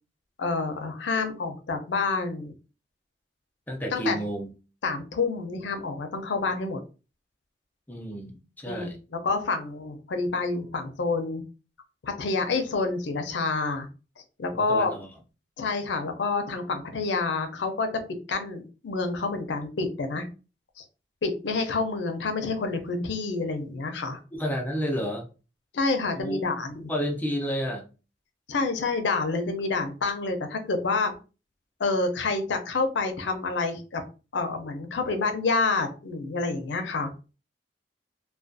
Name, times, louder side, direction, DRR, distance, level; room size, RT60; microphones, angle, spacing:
voice 1, 0.4-2.5 3.9-4.2 4.8-6.8 8.7-8.9 9.2-11.4 12.0-13.9 14.4-14.9 15.6-17.9 18.3-20.3 20.8-20.9 21.2-24.2 25.7-26.9 28.5-31.1 31.8-34.0 34.3-37.3, left 3 dB, 85° left, 6 dB, 0.5 m, -28 dB
voice 2, 3.7-4.5 7.9-9.0 14.5-15.1 24.3-25.3 26.2-26.4 26.9-27.9, equal, 10° left, 1 dB, 0.5 m, -30 dB
2.4 x 2.2 x 2.5 m, 0.33 s
head